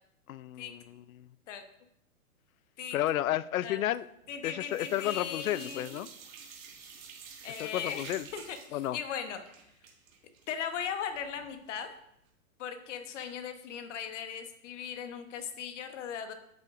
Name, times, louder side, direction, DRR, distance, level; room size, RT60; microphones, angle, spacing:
voice 1, 0.3-1.3 2.9-4.1 4.4-6.1 7.6-8.3 8.7-9.0, left 13 dB, 70° left, 18 dB, 0.5 m, -32 dB
sound 1, 4.0-4.4 4.7-11.5 11.9-12.0 12.3-12.4, right 6 dB, 65° right, 2.1 m, -50 dB
voice 2, 4.3-6.1 6.8-6.9 7.4-9.4 10.5-11.9 12.6-16.3, left 8 dB, 55° left, 8 dB, 1.2 m, -38 dB
9.0 x 7.8 x 2.6 m, 0.79 s
hypercardioid pair, 135°, 44 cm